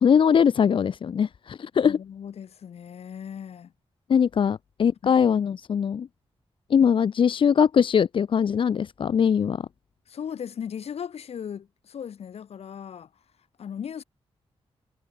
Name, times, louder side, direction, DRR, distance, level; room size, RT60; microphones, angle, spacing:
voice 1, 0.0-2.0 4.1-6.1 6.7-9.6, left 7 dB, 55° left, 0.7 m, -21 dB
voice 2, 1.9-3.7 4.4-4.6 5.0-5.1 10.1-13.1 13.6-14.0, left 8 dB, 75° left, 6.2 m, -37 dB
wide cardioid pair, 150°, 11 cm